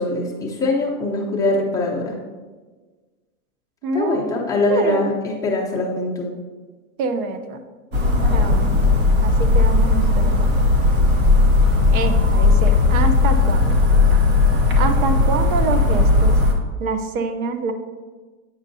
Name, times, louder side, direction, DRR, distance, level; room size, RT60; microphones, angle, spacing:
voice 1, 0.0-2.2 3.9-6.3, left 2 dB, 10° left, -5 dB, 0.7 m, -22 dB
voice 2, 3.8-5.1 7.0-7.6 8.3-8.9 9.2-10.5 11.9-13.7 14.7-16.4 16.8-17.7, right 4 dB, 85° right, 8 dB, 0.8 m, -26 dB
sound 1, 7.9-16.5, left 3 dB, 25° right, 0.7 m, -16 dB
8.7 x 5.6 x 2.6 m, 1.4 s
supercardioid pair, 155°, 42 cm